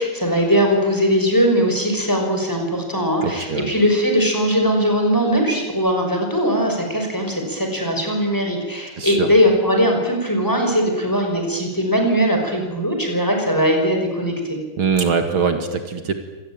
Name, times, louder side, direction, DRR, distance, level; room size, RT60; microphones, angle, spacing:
voice 1, 0.0-14.6, equal, 10° left, 2 dB, 5.6 m, -20 dB
voice 2, 3.2-3.7 9.0-9.3 14.8-16.1, right 5 dB, 70° right, 7 dB, 2.7 m, -22 dB
26.0 x 19.5 x 8.9 m, 1.2 s
omnidirectional pair, 2.4 m